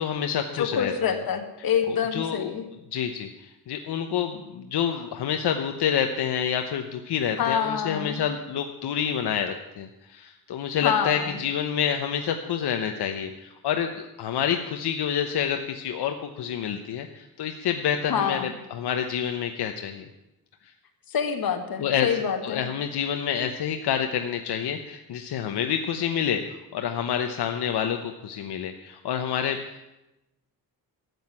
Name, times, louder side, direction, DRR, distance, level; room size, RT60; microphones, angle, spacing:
voice 1, 0.0-1.1 1.9-2.5 2.9-20.1 21.8-22.1 22.4-26.4 26.7-29.8, left 8 dB, 85° left, 5 dB, 1.0 m, -28 dB
voice 2, 0.5-2.7 7.4-8.2 10.8-11.4 18.1-18.5 21.1-22.6, left 7 dB, 65° left, 5 dB, 1.8 m, -26 dB
13.5 x 8.1 x 9.6 m, 0.95 s
wide cardioid pair, 180°, 38 cm